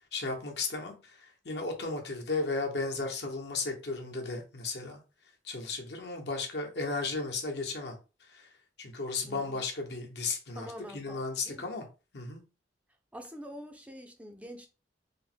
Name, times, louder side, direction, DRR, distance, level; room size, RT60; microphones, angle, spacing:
voice 1, 0.1-1.0 1.4-5.0 5.4-8.0 8.3-8.5 8.8-10.7 10.9-11.9 12.1-12.4, left 3 dB, 70° left, 0.9 m, -34 dB
voice 2, 9.2-9.6 10.6-11.7 13.1-14.7, equal, 10° right, 0.4 m, -45 dB
3.4 x 2.1 x 4.2 m
head